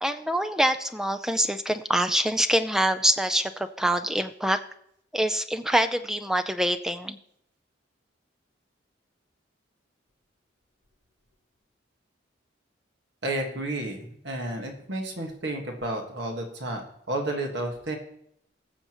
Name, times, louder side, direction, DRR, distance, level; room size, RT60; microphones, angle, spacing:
voice 1, 0.0-4.6 5.1-7.2, equal, 5° right, 8 dB, 0.4 m, -25 dB
voice 2, 13.2-16.8 17.1-18.0, right 1 dB, 60° right, 2 dB, 1.6 m, -31 dB
21.0 x 7.0 x 3.0 m, 0.73 s
head